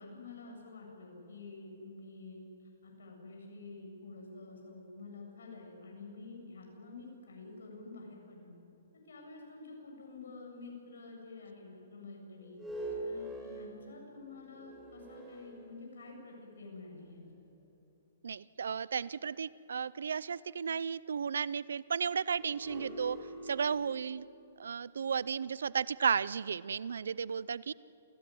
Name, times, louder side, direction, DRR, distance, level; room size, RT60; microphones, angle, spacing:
voice 1, 0.0-8.5 8.9-12.6 13.0-17.3, left 3 dB, 85° left, 0 dB, 7.9 m, -49 dB
sound 1, 12.4-16.2 16.9-17.0 22.3-26.5, right 1 dB, 10° right, 5.2 m, -45 dB
voice 2, 18.2-23.2 23.4-24.3 24.6-27.7, right 6 dB, 85° right, 20 dB, 0.5 m, -34 dB
28.5 x 19.0 x 9.5 m, 2.8 s
hypercardioid pair, 155°, 0 cm